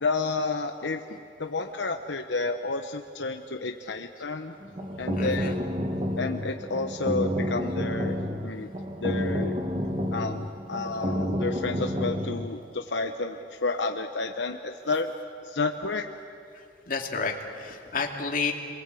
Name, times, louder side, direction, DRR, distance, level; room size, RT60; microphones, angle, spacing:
voice 1, 0.0-4.6 5.0-5.5 6.2-8.1 8.4-8.7 9.0-9.6 10.1-15.1 15.4-16.1, left 3 dB, 85° left, 5 dB, 1.0 m, -30 dB
sound 1, 4.6-12.5, equal, 35° right, 1.7 m, -30 dB
voice 2, 5.2-5.6 16.9-18.5, left 4 dB, 50° left, 2 dB, 2.6 m, -30 dB
28.0 x 22.5 x 8.4 m, 2.4 s
head